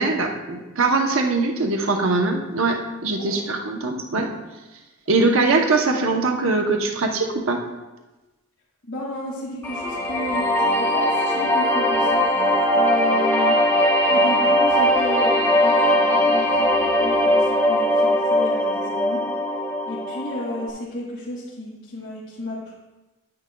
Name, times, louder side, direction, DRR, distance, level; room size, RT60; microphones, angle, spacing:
voice 1, 0.0-4.3 5.1-7.6, right 3 dB, 70° right, 2 dB, 0.8 m, -22 dB
voice 2, 3.1-3.5 5.1-5.4 8.9-12.3 12.7-13.6 14.1-19.2 19.8-22.7, left 1 dB, 60° left, -8 dB, 2.1 m, -33 dB
sound 1, 9.6-20.7, equal, 10° left, 1.0 m, -20 dB
9.9 x 9.7 x 2.3 m, 1.1 s
head